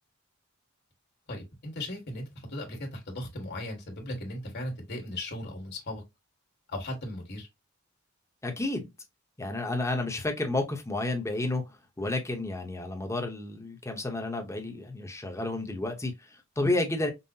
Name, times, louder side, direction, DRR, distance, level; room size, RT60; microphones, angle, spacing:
voice 1, 1.3-6.0 6.7-7.5, left 1 dB, 55° left, 1.7 m, -37 dB
voice 2, 8.4-8.9 9.4-17.1, left 2 dB, 15° left, 0.9 m, -31 dB
5.4 x 2.1 x 2.7 m
head